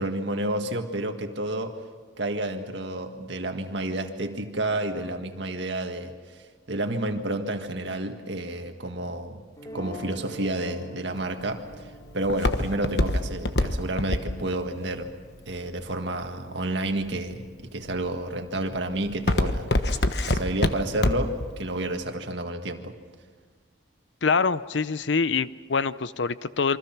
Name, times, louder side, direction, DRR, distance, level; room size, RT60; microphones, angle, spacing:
voice 1, 0.0-1.8 2.2-6.1 6.7-9.4 9.7-11.7 12.1-15.1 15.5-23.0, right 1 dB, 75° right, 1.9 m, -30 dB
sound 1, 9.6-15.7, right 1 dB, 20° left, 3.0 m, -45 dB
Walk footsteps, 11.2-16.3 16.9-17.3 17.9-18.2 18.6-21.4 21.8-21.9, left 1 dB, 65° left, 1.3 m, -25 dB
voice 2, 24.2-26.8, left 5 dB, 80° left, 0.7 m, -25 dB
27.5 x 24.5 x 6.0 m
head